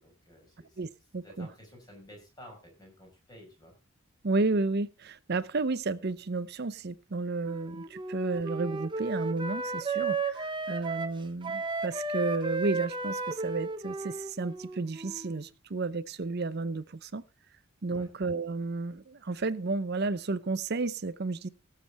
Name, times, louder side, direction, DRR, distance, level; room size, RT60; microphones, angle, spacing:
voice 1, 0.0-0.8 1.2-3.7 17.9-18.1, equal, 20° left, 5.7 m, -52 dB
voice 2, 0.8-1.5 4.2-17.2 17.8-21.5, right 3 dB, 50° right, 0.6 m, -32 dB
Wind instrument woodwind instrument, 7.4-15.4, right 3 dB, 20° right, 0.9 m, -34 dB
18.0 x 7.6 x 4.1 m
head